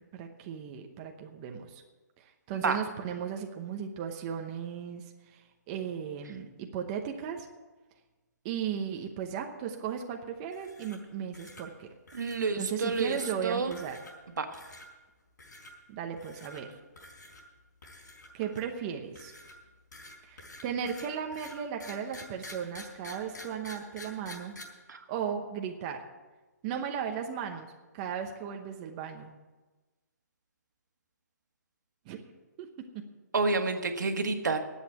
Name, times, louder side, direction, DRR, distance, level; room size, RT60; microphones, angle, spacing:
voice 1, 0.1-1.8 2.5-5.4 5.7-7.5 8.4-11.9 12.5-14.0 15.9-16.7 18.3-19.3 20.2-24.5 25.1-26.0 26.6-29.3 32.1-32.2 32.6-32.7, right 8 dB, 25° right, 3 dB, 0.9 m, -36 dB
sound 1, 10.5-11.1 11.3-11.6 12.1-12.5 12.9-13.3 13.7-14.2 14.5-14.9 15.4-15.7 16.2-16.6 17.0-17.4 17.8-18.7 19.2-24.6, left 1 dB, 85° left, 4.4 m, -48 dB
voice 2, 12.1-13.7 14.4-14.5 24.9-25.0 33.3-34.6, right 4 dB, 80° right, 5 dB, 1.6 m, -29 dB
10.5 x 8.4 x 9.0 m, 1.2 s
hypercardioid pair, 165°, 10 cm